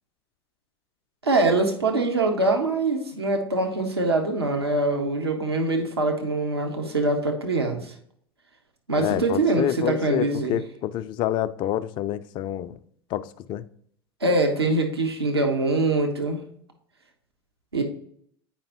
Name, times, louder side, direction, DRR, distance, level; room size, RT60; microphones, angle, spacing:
voice 1, 1.2-7.9 8.9-10.6 14.2-16.4 17.7-17.8, right 2 dB, 80° right, 1.0 m, -23 dB
voice 2, 9.0-12.7 13.1-13.6, left 12 dB, 40° left, 0.4 m, -28 dB
8.7 x 5.2 x 2.9 m
figure-of-eight pair, 75°, 13 cm